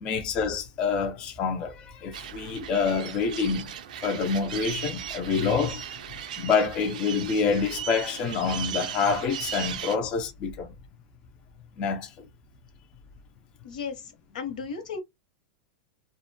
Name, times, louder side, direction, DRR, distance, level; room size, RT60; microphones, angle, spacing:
voice 1, 0.0-3.7 4.0-5.8 6.1-10.7 11.8-12.3, left 5 dB, 25° left, 0.4 m, -27 dB
sound 1, 2.1-10.0, right 10 dB, 80° right, 0.4 m, -37 dB
voice 2, 13.6-15.0, left 5 dB, 85° left, 0.8 m, -35 dB
2.4 x 2.1 x 2.5 m
supercardioid pair, 170°, 4 cm